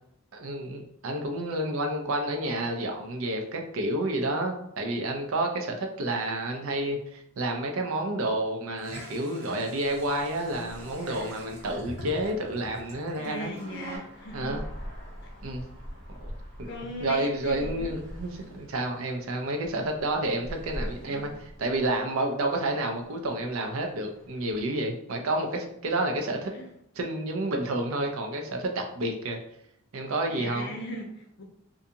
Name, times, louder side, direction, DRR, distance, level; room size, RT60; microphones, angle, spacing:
voice 1, 0.3-13.5 14.3-14.6 15.4-15.6 16.2-16.3 16.6-16.7 17.0-21.3 21.6-26.5 27.0-29.4 29.9-30.7, right 1 dB, 70° right, 3 dB, 0.5 m, -30 dB
sound 1, 8.8-14.0, right 1 dB, 90° right, 1.4 m, -43 dB
sound 2, 9.8-24.6, equal, 55° right, 1.0 m, -44 dB
voice 2, 13.2-14.6 16.6-18.0 20.6-21.3 26.5-26.7 30.3-31.4, left 1 dB, 50° left, 1 dB, 0.5 m, -39 dB
2.5 x 2.3 x 2.7 m, 0.75 s
head